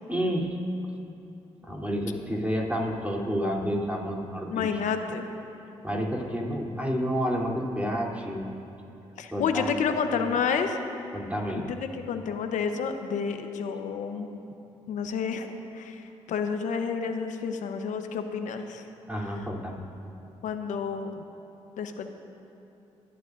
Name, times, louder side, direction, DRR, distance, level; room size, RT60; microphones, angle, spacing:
voice 1, 0.1-0.5 1.6-4.8 5.8-8.5 9.3-9.7 10.2-10.3 11.1-11.7 19.1-19.8, equal, 10° right, -3 dB, 3.4 m, -30 dB
voice 2, 4.5-5.3 9.2-10.8 11.7-14.4 14.9-18.9 20.4-21.2 21.8-22.1, left 6 dB, 75° left, 6 dB, 1.0 m, -30 dB
27.5 x 11.5 x 2.7 m, 2.8 s
supercardioid pair, 50°, 13 cm